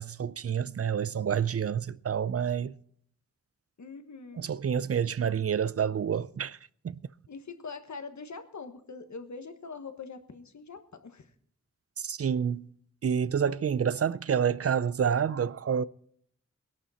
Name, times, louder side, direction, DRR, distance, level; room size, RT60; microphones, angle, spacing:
voice 1, 0.0-2.7 4.4-6.6 6.8-7.0 12.0-12.7 13.0-15.8, right 7 dB, 55° right, 0.5 m, -28 dB
voice 2, 3.8-4.5 7.3-11.3, left 4 dB, 75° left, 1.4 m, -43 dB
20.0 x 11.5 x 4.2 m
wide cardioid pair, 90°, 29 cm